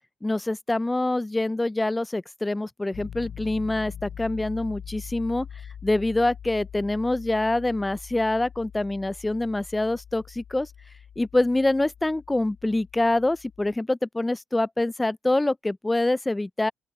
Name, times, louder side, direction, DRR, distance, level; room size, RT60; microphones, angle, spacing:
voice 1, 0.2-5.5 5.8-10.7 11.2-16.7, left 2 dB, 15° left, 0.4 m, -25 dB
Piano, 2.9-13.8, left 8 dB, 60° left, 2.9 m, -43 dB
open air
cardioid pair, 90°, 0 cm